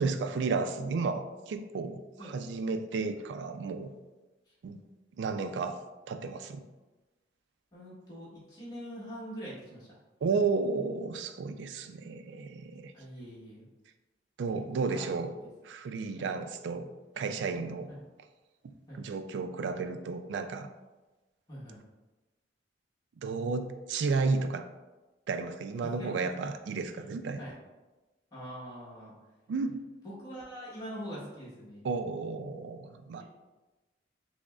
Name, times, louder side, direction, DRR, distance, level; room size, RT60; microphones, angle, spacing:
voice 1, 0.0-3.9 4.6-4.8 5.1-6.6 10.2-12.9 14.4-15.3 15.6-16.9 17.2-17.9 18.6-20.7 23.2-24.7 25.3-27.4 29.5-29.8 31.8-33.2, right 4 dB, 75° right, 8 dB, 0.3 m, -33 dB
voice 2, 7.7-9.9 12.9-13.7 14.7-15.5 16.1-16.4 17.9-18.0 18.9-19.0 21.5-21.8 25.8-26.1 26.8-27.0 27.4-27.6 28.3-29.1 30.0-31.9 33.2-33.3, equal, 20° left, -9 dB, 1.2 m, -44 dB
6.0 x 2.1 x 2.3 m, 1.1 s
head